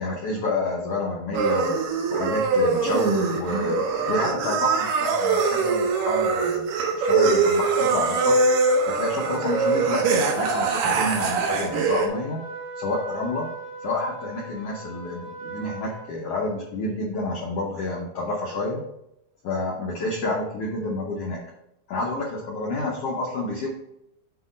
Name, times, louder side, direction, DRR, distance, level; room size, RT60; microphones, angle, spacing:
voice 1, 0.0-1.8 2.1-3.8 4.1-8.4 8.9-10.0 10.3-12.4 12.8-13.5 13.8-18.8 19.4-21.4 21.9-23.7, left 2 dB, 75° left, -1 dB, 1.4 m, -29 dB
sound 1, 1.3-12.1, right 4 dB, 80° right, 2.6 m, -23 dB
Trumpet, 9.2-16.1, right 2 dB, 55° right, 2.7 m, -39 dB
8.3 x 2.9 x 5.0 m, 0.82 s
omnidirectional pair, 3.8 m